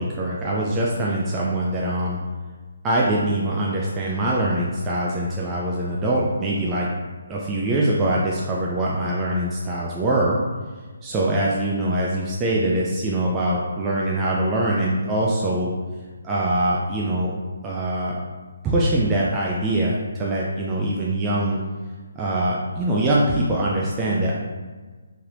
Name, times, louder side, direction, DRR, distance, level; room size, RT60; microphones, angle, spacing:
voice 1, 0.0-2.2 2.8-6.9 7.3-10.4 11.0-15.7 16.2-17.3 17.6-18.2 18.6-21.6 22.2-24.3, right 1 dB, 15° right, -5 dB, 0.3 m, -23 dB
3.2 x 2.7 x 2.5 m, 1.4 s
hypercardioid pair, 160°, 0 cm